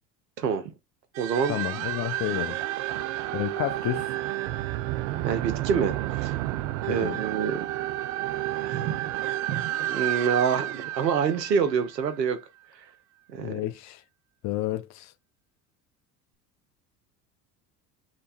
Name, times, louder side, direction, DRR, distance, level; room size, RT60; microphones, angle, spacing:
voice 1, 0.4-0.7 1.2-1.6 3.1-3.3 5.2-6.3 6.9-7.7 8.6-9.1 9.5-12.4 13.3-13.5, right 7 dB, 85° right, 0.9 m, -27 dB
sound 1, 1.1-12.4, right 15 dB, 60° right, 0.5 m, -31 dB
voice 2, 1.5-2.6 3.3-4.1 6.9-7.2 13.4-14.0 14.4-15.1, left 14 dB, 35° left, 0.4 m, -31 dB
3.3 x 3.1 x 4.1 m
hypercardioid pair, 75°, 49 cm